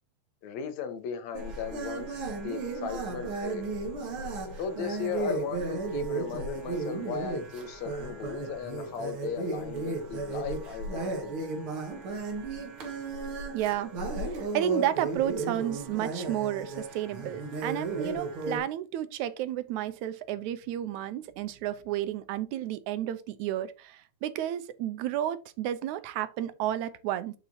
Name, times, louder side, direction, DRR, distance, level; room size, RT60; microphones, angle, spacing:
voice 1, 0.4-3.7 4.6-11.5, left 6 dB, 75° left, 2.3 m, -37 dB
sound 1, 1.3-18.6, right 3 dB, 50° right, 2.4 m, -34 dB
voice 2, 13.5-13.9 14.3-27.3, right 12 dB, 90° right, 2.2 m, -32 dB
7.0 x 6.8 x 2.8 m
omnidirectional pair, 3.3 m